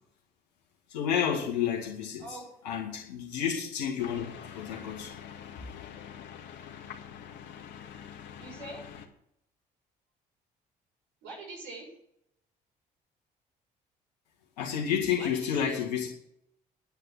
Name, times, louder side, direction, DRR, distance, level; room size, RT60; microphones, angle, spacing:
voice 1, 0.9-2.4 2.6-4.3 4.6-5.1 14.6-16.1, left 8 dB, 85° left, -2 dB, 2.0 m, -30 dB
sound 1, 4.0-9.1, left 8 dB, 60° left, 1.9 m, -45 dB
voice 2, 8.4-8.8 11.2-11.9 15.2-15.8, right 2 dB, 75° right, -1 dB, 6.6 m, -43 dB
10.0 x 9.0 x 7.5 m, 0.72 s
hypercardioid pair, 55°, 21 cm